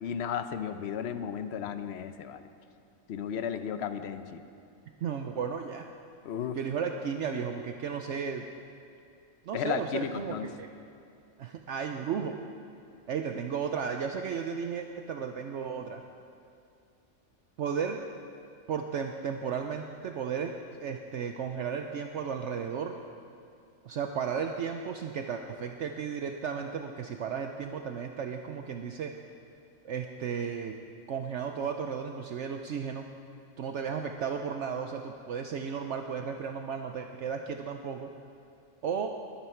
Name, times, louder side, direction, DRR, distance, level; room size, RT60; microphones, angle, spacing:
voice 1, 0.0-2.4 3.1-4.4 6.2-6.6 9.5-10.5, left 8 dB, 60° left, 10 dB, 0.9 m, -34 dB
voice 2, 5.0-5.9 6.5-8.5 9.5-10.7 11.4-12.4 13.1-16.0 17.6-18.0 18.7-23.0 23.8-29.1 29.8-30.8 31.1-33.0 33.6-38.1 38.8-39.1, right 6 dB, 65° right, 4 dB, 0.9 m, -34 dB
21.0 x 10.0 x 4.5 m, 2.5 s
omnidirectional pair, 1.4 m